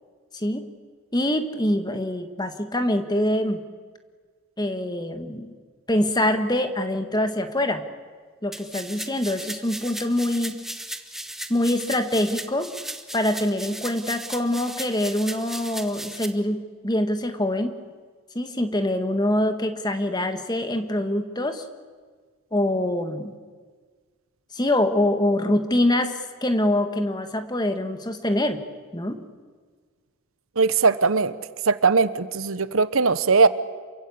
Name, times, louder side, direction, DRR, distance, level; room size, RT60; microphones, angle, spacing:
voice 1, 0.3-0.7 1.1-3.6 4.6-5.5 5.9-7.8 8.4-10.6 11.5-12.7 13.1-17.7 18.3-21.6 22.5-23.3 24.5-28.6 28.9-29.2, left 1 dB, 20° left, 8 dB, 1.6 m, -24 dB
sound 1, 8.5-16.3, right 1 dB, ahead, 1.0 m, -36 dB
voice 2, 30.6-31.3 31.7-33.5, right 4 dB, 70° right, 14 dB, 1.0 m, -19 dB
28.5 x 23.0 x 8.6 m, 1.5 s
head